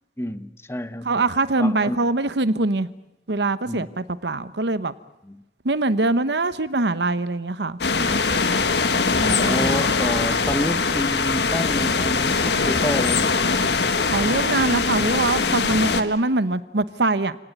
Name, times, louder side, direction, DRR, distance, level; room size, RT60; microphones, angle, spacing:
voice 1, 0.2-1.2 1.6-2.0 3.6-3.9 5.2-5.4 8.0-8.4 9.3-13.5, left 1 dB, 15° left, 12 dB, 0.9 m, -29 dB
voice 2, 1.0-2.9 3.3-4.9 5.6-7.8 9.2-9.7 14.1-17.4, right 2 dB, 80° right, 14 dB, 1.0 m, -23 dB
sound 1, 7.8-16.0, left 4 dB, 75° left, 1.6 m, -22 dB
28.5 x 18.0 x 9.5 m, 0.96 s
head